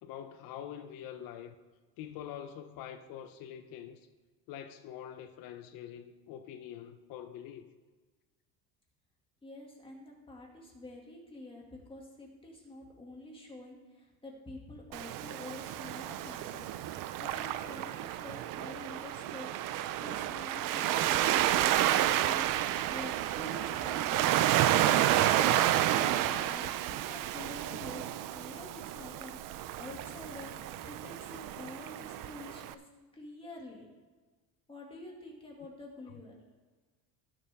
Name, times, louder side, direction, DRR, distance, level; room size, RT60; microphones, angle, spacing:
voice 1, 0.0-1.6 2.0-4.0 4.5-7.7, left 10 dB, 65° left, 0.9 m, -45 dB
voice 2, 9.4-25.7 26.0-30.5 30.8-32.8 33.1-33.9 34.7-36.3, left 2 dB, 15° left, 2.3 m, -47 dB
Waves surf, 14.9-32.7, right 13 dB, 60° right, 0.6 m, -30 dB
17.0 x 6.8 x 3.6 m
cardioid pair, 145°, 37 cm